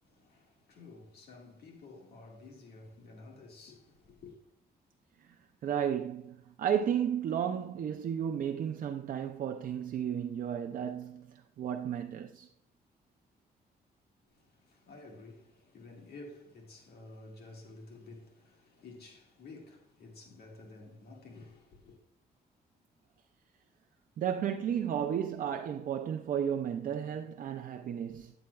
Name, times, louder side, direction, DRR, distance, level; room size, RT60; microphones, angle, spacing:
voice 1, 0.0-4.4 14.3-22.0, left 3 dB, 75° left, 1.7 m, -52 dB
voice 2, 5.6-12.5 24.2-28.3, right 9 dB, 55° right, 0.5 m, -33 dB
9.3 x 8.7 x 2.3 m
cardioid pair, 135°, 17 cm